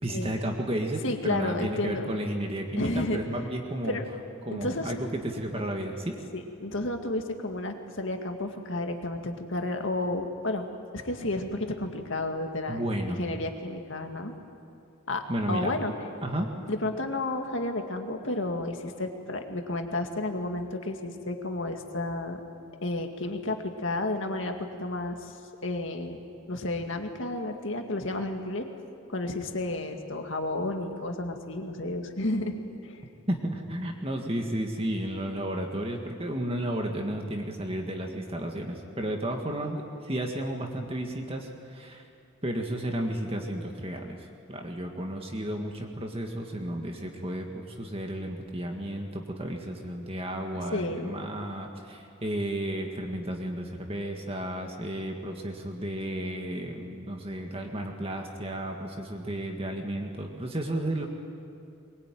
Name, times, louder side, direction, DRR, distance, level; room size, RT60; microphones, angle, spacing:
voice 1, 0.0-4.0 4.5-6.2 12.7-13.2 15.3-15.7 16.2-16.5 33.3-42.0 42.4-61.0, right 1 dB, 25° right, 2 dB, 1.9 m, -33 dB
voice 2, 1.0-2.1 2.8-3.2 3.8-4.0 4.5-4.9 6.3-10.7 10.9-12.8 13.1-14.3 15.1-15.2 15.5-15.9 16.7-22.4 22.8-25.4 25.6-26.2 26.5-28.7 29.1-32.6 32.8-33.0 50.5-51.1, left 2 dB, 65° left, 4 dB, 2.1 m, -31 dB
22.5 x 21.5 x 9.3 m, 2.5 s
head